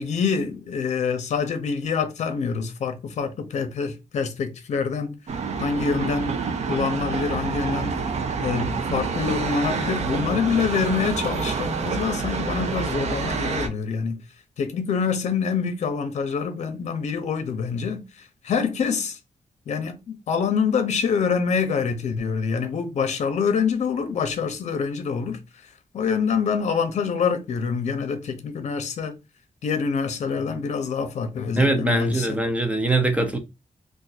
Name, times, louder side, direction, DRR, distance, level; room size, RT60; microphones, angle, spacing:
voice 1, 0.0-5.1 5.6-8.0 8.4-14.2 14.6-19.2 19.7-25.4 25.9-29.1 29.6-32.4, left 6 dB, 65° left, 0.6 m, -26 dB
sound 1, 5.3-13.7, right 5 dB, 60° right, 0.6 m, -27 dB
voice 2, 31.6-33.4, right 2 dB, 10° right, 0.4 m, -22 dB
2.5 x 2.5 x 4.0 m
wide cardioid pair, 180°, 13 cm